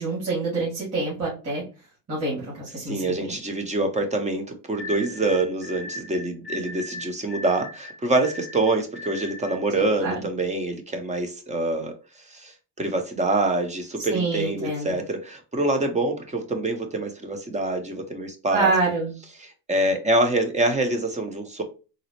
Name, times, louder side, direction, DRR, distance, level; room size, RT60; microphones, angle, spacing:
voice 1, 0.0-1.6 2.1-3.4 9.7-10.3 14.1-15.0 18.5-19.1, right 3 dB, 35° right, 1.8 m, -26 dB
voice 2, 2.9-18.7 19.4-21.6, right 2 dB, 15° right, 0.6 m, -26 dB
sound 1, 4.8-9.7, left 1 dB, 25° left, 0.7 m, -37 dB
3.9 x 2.0 x 2.9 m
cardioid pair, 110°, 41 cm